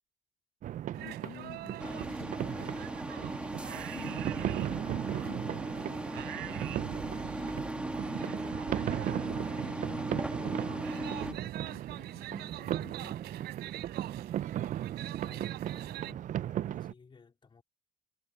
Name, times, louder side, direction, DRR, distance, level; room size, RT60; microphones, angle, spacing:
sound 1, 0.6-16.9, right 12 dB, 50° right, 0.4 m, -37 dB
sound 2, 0.9-16.1, right 16 dB, 80° right, 3.6 m, -47 dB
voice 1, 1.0-2.9 3.6-8.6 9.1-13.2, left 11 dB, 60° left, 1.7 m, -51 dB
sound 3, 1.8-11.3, right 1 dB, 5° right, 1.3 m, -38 dB
voice 2, 15.2-17.6, left 5 dB, 30° left, 3.9 m, -57 dB
cardioid pair, 110°, 17 cm